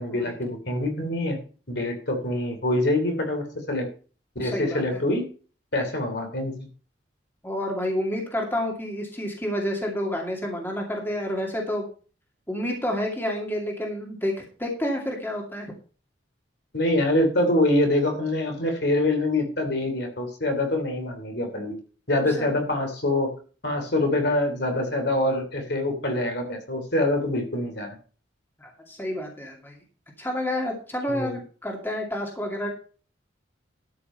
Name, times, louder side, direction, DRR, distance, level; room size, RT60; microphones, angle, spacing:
voice 1, 0.0-1.4 1.7-3.9 4.3-5.3 5.7-6.6 16.7-21.8 22.1-23.3 23.6-28.0 31.1-31.4, left 1 dB, 55° left, 4 dB, 3.0 m, -25 dB
voice 2, 4.4-5.0 7.4-11.9 12.5-15.7 22.2-22.5 28.6-29.8 30.2-32.7, left 1 dB, 10° left, 0 dB, 2.4 m, -29 dB
12.5 x 5.8 x 5.6 m, 0.39 s
head